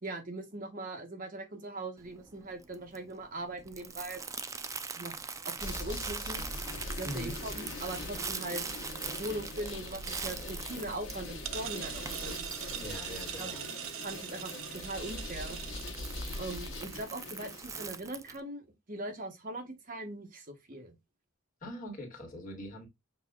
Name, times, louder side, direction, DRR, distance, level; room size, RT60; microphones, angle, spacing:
voice 1, 0.0-4.2 5.0-5.1 5.4-6.4 7.0-8.8 9.2-12.5 13.4-13.5 14.0-15.6 16.4-20.9, right 2 dB, 45° right, 1.2 m, -40 dB
Crumpling crinkling, 2.0-18.4, right 5 dB, 15° right, 0.4 m, -43 dB
sound 1, 5.6-17.9, left 2 dB, 65° left, 1.2 m, -42 dB
voice 2, 7.0-7.4 12.8-13.7 21.6-22.9, equal, 40° left, 1.7 m, -42 dB
sound 2, 9.3-16.8, right 10 dB, 85° right, 0.5 m, -43 dB
6.5 x 2.7 x 2.3 m
head